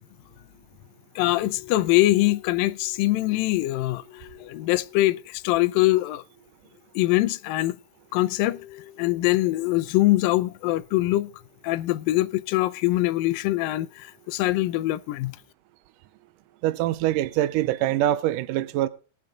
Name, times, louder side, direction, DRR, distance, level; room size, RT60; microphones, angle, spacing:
voice 1, 1.2-6.2 7.0-7.8 8.1-11.3 11.6-15.4, left 17 dB, 80° left, 2.1 m, -23 dB
voice 2, 16.6-18.9, right 13 dB, 80° right, 1.9 m, -24 dB
20.0 x 7.6 x 3.7 m
omnidirectional pair, 4.4 m